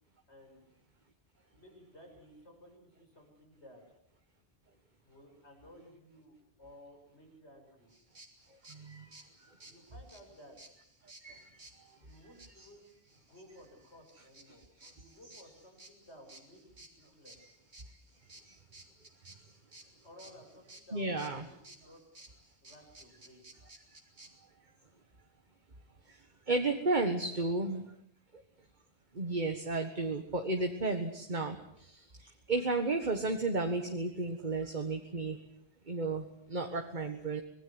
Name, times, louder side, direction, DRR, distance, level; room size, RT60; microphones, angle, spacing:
voice 1, 0.3-0.6 1.5-3.8 5.0-7.9 9.6-10.6 12.0-14.7 14.9-17.4 20.0-22.0 22.6-23.5 27.3-27.9, equal, 90° left, 2 dB, 7.6 m, -56 dB
sound 1, 7.9-24.3, right 2 dB, 80° right, 3.7 m, -57 dB
voice 2, 8.7-9.1 11.2-11.4 12.6-12.7 20.9-21.4 26.5-27.8 29.2-31.6 31.9-32.0 32.5-35.4 35.9-37.4, right 3 dB, 45° right, 5 dB, 1.8 m, -32 dB
25.5 x 20.5 x 8.0 m, 0.71 s
omnidirectional pair, 1.1 m